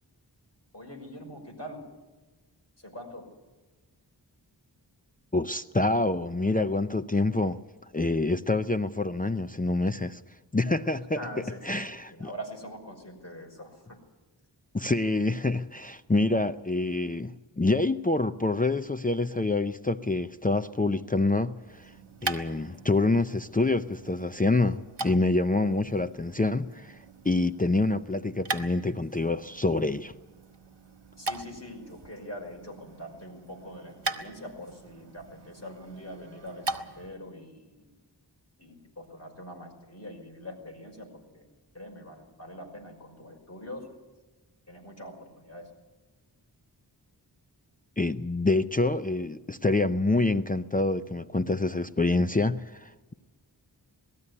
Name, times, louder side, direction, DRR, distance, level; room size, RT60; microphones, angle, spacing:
voice 1, 0.7-1.8 2.8-3.3 11.2-14.0 31.2-37.9 38.6-41.5 41.7-43.9 44.7-45.7, equal, 35° left, 5.6 m, -43 dB
voice 2, 5.3-7.6 7.9-10.2 10.5-11.2 11.7-12.1 14.7-21.9 22.2-27.0 27.2-30.1 48.0-53.1, left 2 dB, 20° left, 0.5 m, -26 dB
sound 1, 21.6-37.2, right 3 dB, 70° right, 1.6 m, -40 dB
19.5 x 14.0 x 9.8 m
wide cardioid pair, 60°, 43 cm